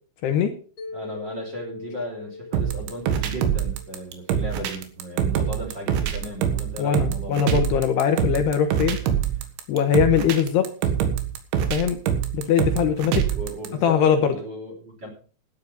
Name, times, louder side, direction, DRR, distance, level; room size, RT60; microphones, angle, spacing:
voice 1, 0.2-0.5 6.8-9.0 9.7-10.7 11.7-12.0 12.3-13.2 13.8-14.3, left 8 dB, 70° left, 6 dB, 3.0 m, -21 dB
Mallet percussion, 0.8-4.9, left 3 dB, 30° left, 1.8 m, -40 dB
voice 2, 0.9-7.4 13.3-15.1, equal, 25° right, 0 dB, 3.1 m, -36 dB
sound 1, 2.5-13.7, right 9 dB, 80° right, 3.8 m, -25 dB
12.5 x 10.5 x 5.2 m, 0.41 s
omnidirectional pair, 5.3 m